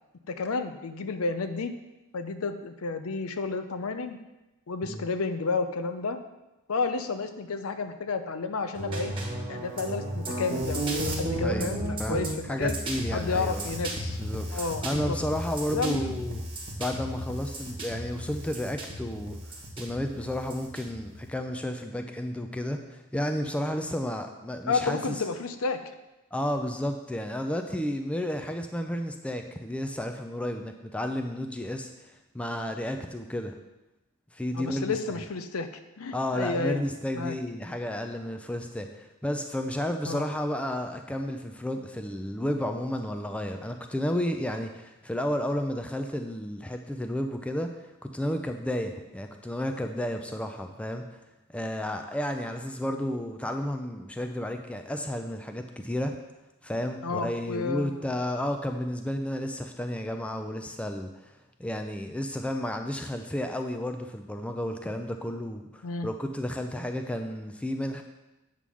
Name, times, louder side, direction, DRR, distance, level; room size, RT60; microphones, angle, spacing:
voice 1, 0.3-1.7 2.1-4.2 4.7-6.2 6.7-9.1 9.5-12.8 13.1-14.2 14.5-15.2 15.7-16.2 24.7-25.8 34.5-35.7 36.0-36.8 37.1-37.4 40.1-40.2 57.0-58.0 65.8-66.1, left 4 dB, 75° left, 9 dB, 0.6 m, -31 dB
sound 1, 8.8-21.3, right 1 dB, 25° right, 1.4 m, -34 dB
voice 2, 11.4-11.7 12.0-13.7 14.2-16.4 16.8-19.4 19.8-25.2 26.3-31.9 32.3-33.5 34.3-35.2 36.1-51.0 51.5-56.2 56.6-61.3 61.6-68.0, left 1 dB, 5° left, 5 dB, 0.4 m, -32 dB
8.3 x 3.7 x 6.2 m, 0.99 s
head